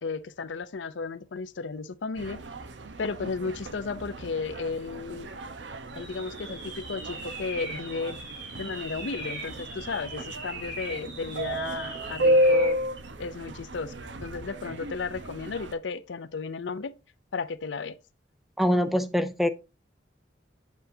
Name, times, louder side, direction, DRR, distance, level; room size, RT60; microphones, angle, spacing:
voice 1, 0.0-2.4 3.0-5.3 5.9-8.2 8.5-12.8 13.2-16.9 17.3-18.0, left 4 dB, 80° left, 0.5 m, -34 dB
sound 1, 2.2-15.7, equal, 80° right, 0.8 m, -32 dB
sound 2, 5.9-12.8, right 2 dB, 60° right, 3.7 m, -40 dB
voice 2, 18.6-19.5, equal, ahead, 0.5 m, -24 dB
8.0 x 7.9 x 2.7 m
head